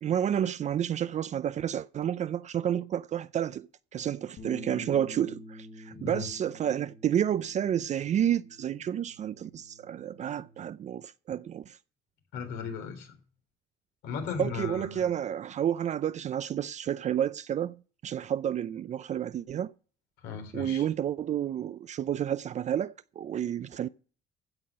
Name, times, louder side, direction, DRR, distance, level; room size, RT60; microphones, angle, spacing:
voice 1, 0.0-11.8 14.4-17.8 18.0-19.7 20.5-23.9, right 10 dB, 45° right, 0.5 m, -30 dB
Bass guitar, 4.4-10.6, left 1 dB, 70° left, 5.4 m, -49 dB
voice 2, 5.9-6.3 12.3-13.1 14.0-15.1 20.2-20.8, left 6 dB, 85° left, 3.8 m, -36 dB
15.5 x 5.9 x 6.7 m
cardioid pair, 110°, 17 cm